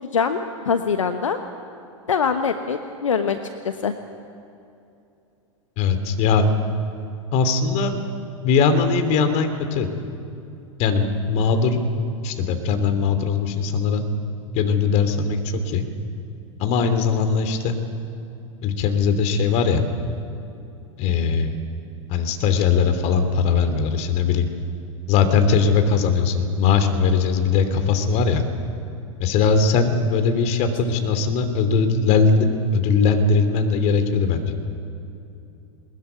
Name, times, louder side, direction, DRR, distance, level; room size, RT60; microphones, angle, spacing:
voice 1, 0.1-1.4 2.1-3.4 3.6-3.9, left 6 dB, 75° left, 8 dB, 1.2 m, -23 dB
voice 2, 5.8-6.5 7.3-8.0 8.4-9.9 10.8-11.8 12.2-14.0 14.5-15.4 15.6-15.9 16.6-17.7 18.6-19.8 21.0-21.5 22.1-24.5 25.1-28.4 29.2-32.5 32.7-34.5, left 5 dB, 40° left, 7 dB, 3.1 m, -20 dB
21.5 x 21.0 x 9.4 m, 2.7 s
figure-of-eight pair, 90°, 17 cm